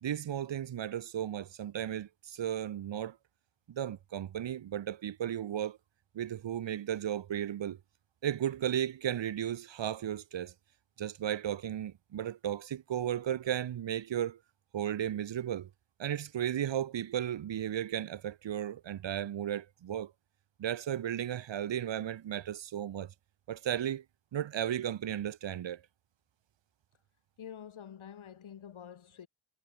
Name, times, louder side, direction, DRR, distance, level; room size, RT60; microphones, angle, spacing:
voice 1, 0.0-3.2 3.7-5.8 6.1-7.8 8.2-10.5 11.0-14.4 14.7-15.7 16.0-20.1 20.6-23.1 23.5-24.0 24.3-25.8, right 10 dB, 65° right, 1.0 m, -35 dB
voice 2, 27.4-29.3, left 8 dB, 75° left, 4.5 m, -47 dB
wide cardioid pair, 155°, 48 cm